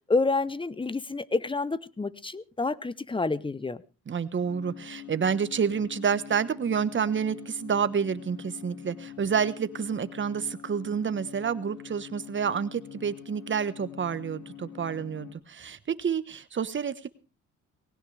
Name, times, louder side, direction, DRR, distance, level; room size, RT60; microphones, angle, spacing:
voice 1, 0.1-3.8, left 3 dB, 15° left, 18 dB, 0.8 m, -28 dB
voice 2, 4.1-17.1, right 7 dB, 40° right, 13 dB, 1.3 m, -29 dB
sound 1, 4.4-15.3, left 10 dB, 80° left, 5.1 m, -45 dB
19.5 x 17.0 x 3.4 m, 0.33 s
cardioid pair, 90°, 30 cm